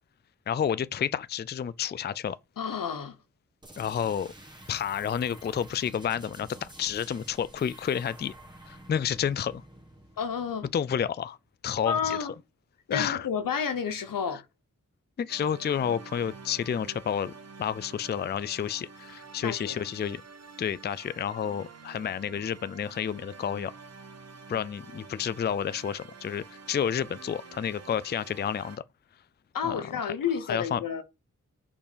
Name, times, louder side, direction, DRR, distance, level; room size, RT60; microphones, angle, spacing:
voice 1, 0.5-2.4 3.8-4.3 4.7-8.3 8.7-9.6 10.7-11.4 11.6-12.2 12.9-13.3 15.2-17.3 17.6-20.2 20.6-23.7 24.5-28.8 29.6-29.8 30.0-30.1 30.5-30.8, left 8 dB, 30° left, 0.4 m, -30 dB
voice 2, 2.6-3.2 10.2-10.7 11.8-12.3 12.9-14.5 19.4-19.8 29.5-31.0, left 7 dB, 85° left, 1.0 m, -30 dB
sound 1, 3.6-11.2, right 1 dB, 15° right, 1.4 m, -50 dB
sound 2, 15.3-28.8, right 4 dB, 50° right, 0.9 m, -48 dB
5.6 x 4.3 x 5.1 m
cardioid pair, 70°, 32 cm